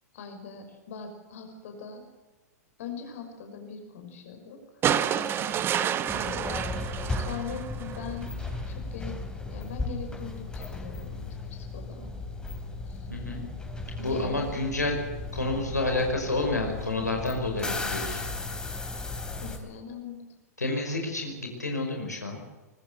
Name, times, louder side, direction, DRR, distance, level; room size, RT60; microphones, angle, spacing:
voice 1, 0.1-2.0 2.8-6.4 6.7-6.9 7.2-8.3 8.7-9.2 9.5-11.2 11.5-12.1 12.9-13.1 14.0-14.7 19.4-20.3, left 6 dB, 55° left, 5 dB, 6.0 m, -41 dB
sound 1, 4.8-8.1 9.5-9.6, right 9 dB, 25° right, 1.5 m, -29 dB
sound 2, 6.1-19.6, left 3 dB, 10° left, 3.9 m, -36 dB
voice 2, 13.1-13.4 14.0-15.0 15.3-18.2 20.6-22.4, left 2 dB, 85° left, 2 dB, 5.5 m, -29 dB
24.5 x 21.0 x 8.1 m, 1.2 s
figure-of-eight pair, 100°, 9 cm